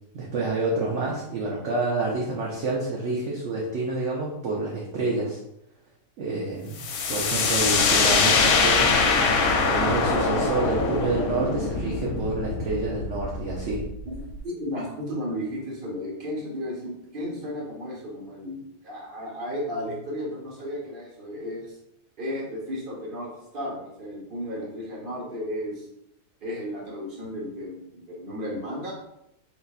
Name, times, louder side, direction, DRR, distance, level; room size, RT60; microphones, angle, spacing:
voice 1, 0.1-5.4 6.2-6.8 7.1-9.0 9.7-13.8, right 3 dB, 60° right, -3 dB, 0.9 m, -28 dB
sound 1, 6.8-14.4, left 4 dB, 75° left, 1.1 m, -23 dB
voice 2, 14.4-21.8 22.2-25.9 26.4-28.9, equal, 35° right, -3 dB, 1.2 m, -34 dB
4.0 x 3.9 x 2.4 m, 0.82 s
omnidirectional pair, 1.6 m